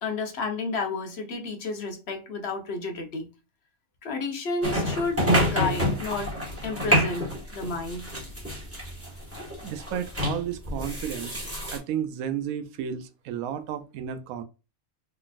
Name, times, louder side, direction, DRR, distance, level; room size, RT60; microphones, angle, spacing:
voice 1, 0.0-3.3 4.0-6.3 6.6-8.1, left 3 dB, 50° left, 1.0 m, -31 dB
sound 1, 4.6-11.8, equal, 10° right, 1.3 m, -28 dB
voice 2, 9.6-11.4 11.7-14.4, right 9 dB, 80° right, 1.0 m, -32 dB
3.8 x 3.3 x 2.4 m
omnidirectional pair, 1.5 m